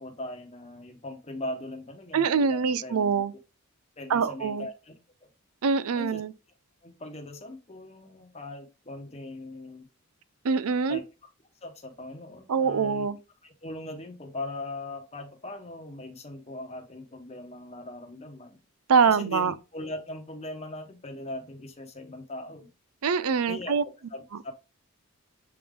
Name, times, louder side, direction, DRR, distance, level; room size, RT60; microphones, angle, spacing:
voice 1, 0.0-3.1 4.0-4.9 5.2-5.3 5.9-6.2 6.8-9.9 10.9-11.0 11.6-18.6 19.1-22.7 23.5-23.8 24.1-24.5, left 1 dB, 30° left, 1.1 m, -40 dB
voice 2, 2.1-3.3 4.1-4.7 5.6-6.3 10.4-11.0 12.5-13.2 18.9-19.5 23.0-23.8, right 5 dB, 85° right, 0.5 m, -24 dB
7.7 x 3.7 x 3.6 m
head